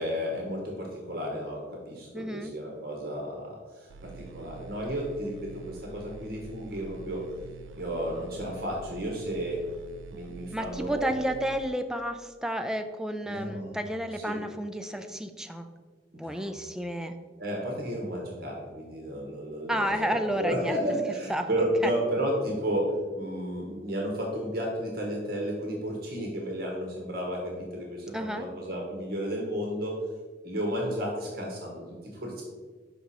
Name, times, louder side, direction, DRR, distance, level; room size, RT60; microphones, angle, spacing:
voice 1, 0.0-7.2 7.8-9.6 10.1-11.1 13.2-13.8 14.2-14.4 16.1-16.5 17.4-30.0 30.4-31.8 32.1-32.4, equal, 55° right, -1 dB, 1.2 m, -32 dB
voice 2, 2.1-2.6 10.5-15.7 16.1-17.1 19.7-20.8 21.3-21.5 21.8-21.9 28.1-28.5, equal, 5° right, 6 dB, 0.3 m, -31 dB
sound 1, 3.9-11.7, right 5 dB, 85° right, 0.3 m, -46 dB
5.8 x 5.1 x 4.1 m, 1.4 s
head